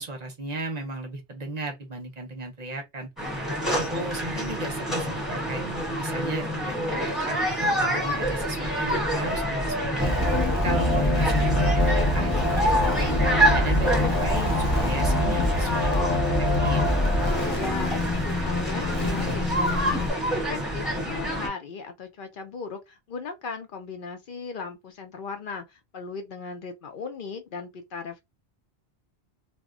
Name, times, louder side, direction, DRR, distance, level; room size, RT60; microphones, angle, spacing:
voice 1, 0.0-3.1 3.7-5.6 6.0-7.0 7.3-10.2 10.6-13.2 13.5-16.8, right 2 dB, 45° right, 0.7 m, -35 dB
sound 1, 3.2-21.5, equal, ahead, 1.1 m, -28 dB
sound 2, 10.0-20.1, left 1 dB, 30° left, 0.4 m, -24 dB
voice 2, 17.5-28.2, left 5 dB, 60° left, 0.7 m, -37 dB
2.2 x 2.1 x 3.6 m
omnidirectional pair, 1.0 m